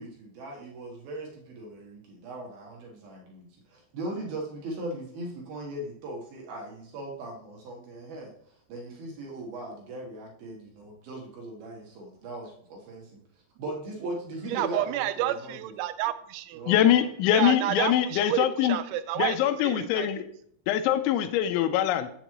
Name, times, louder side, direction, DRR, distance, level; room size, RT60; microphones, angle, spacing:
voice 1, 0.0-8.3 8.7-13.2 13.6-15.8 16.5-17.0, right 1 dB, 65° right, -1 dB, 2.7 m, -39 dB
voice 2, 14.5-16.6 17.3-20.1, right 13 dB, 90° right, 11 dB, 3.0 m, -30 dB
voice 3, 16.7-18.8 19.2-20.3 20.7-22.1, left 11 dB, 85° left, 9 dB, 3.0 m, -23 dB
7.9 x 7.3 x 3.0 m, 0.66 s
omnidirectional pair, 5.3 m